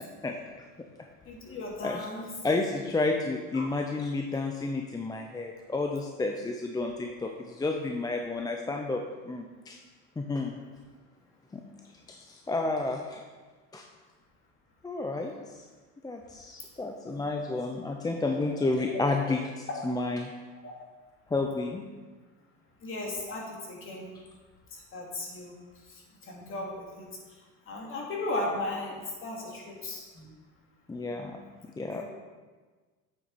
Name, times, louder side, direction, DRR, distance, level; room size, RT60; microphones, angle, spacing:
voice 1, 0.2-0.7 1.8-2.1 2.4-9.8 10.2-10.6 11.5-11.6 12.1-13.2 13.7-13.8 14.8-15.6 16.0-20.3 21.3-21.8 30.9-31.4 31.6-32.0, left 3 dB, 10° left, 2 dB, 0.5 m, -31 dB
voice 2, 1.3-2.3 3.5-3.7 18.2-18.7 19.7-19.8 20.6-20.7 22.8-24.1 24.7-25.5 26.2-27.1 27.7-30.3 31.8-32.0, left 2 dB, 35° left, -2 dB, 2.5 m, -36 dB
8.6 x 7.7 x 4.1 m, 1.4 s
supercardioid pair, 115°, 36 cm